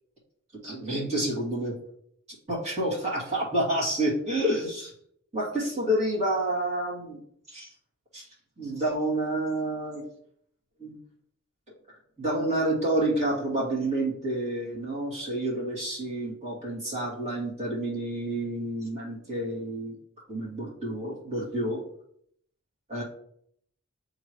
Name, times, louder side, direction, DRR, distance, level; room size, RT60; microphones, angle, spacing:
voice 1, 0.6-1.7 2.5-4.9 5.3-7.2 7.5-7.7 8.1-8.2 8.6-10.0 10.8-11.0 12.2-20.0 20.3-21.8 22.9-23.0, right 1 dB, 30° right, -7 dB, 2.7 m, -29 dB
8.0 x 3.8 x 3.2 m, 0.68 s
head